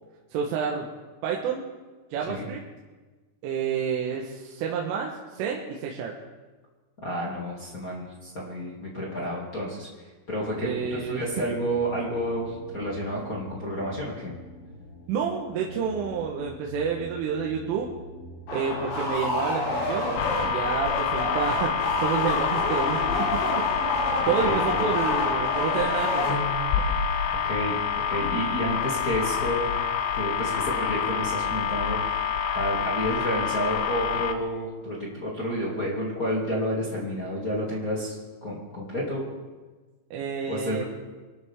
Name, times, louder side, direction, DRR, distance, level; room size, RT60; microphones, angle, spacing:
voice 1, 0.3-0.9 1.2-1.6 2.1-2.6 3.4-6.1 10.6-11.3 15.1-17.9 18.5-23.7 24.3-26.4 40.1-40.8, right 6 dB, 75° right, -1 dB, 3.7 m, -29 dB
voice 2, 7.0-9.9 10.3-14.3 24.4-24.9 27.4-27.8 28.0-29.7 30.1-32.2 32.5-38.1 38.4-39.2 40.5-40.8, equal, 30° left, -5 dB, 1.6 m, -30 dB
sound 1, 10.4-25.5, equal, 55° right, 6.6 m, -45 dB
sound 2, 18.5-26.8, left 2 dB, 60° left, 5.5 m, -29 dB
sound 3, 20.2-34.3, left 7 dB, 80° left, 2.7 m, -27 dB
24.5 x 13.0 x 3.7 m, 1.3 s
omnidirectional pair, 6.0 m